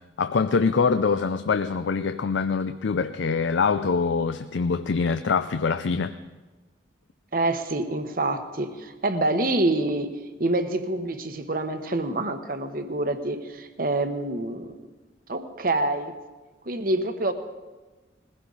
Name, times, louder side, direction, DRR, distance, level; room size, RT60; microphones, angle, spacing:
voice 1, 0.2-6.2, left 5 dB, 80° left, 11 dB, 0.5 m, -24 dB
voice 2, 7.3-14.7 15.3-16.1 16.7-17.3, right 2 dB, 50° right, 8 dB, 1.1 m, -26 dB
20.5 x 16.0 x 4.0 m, 1.2 s
head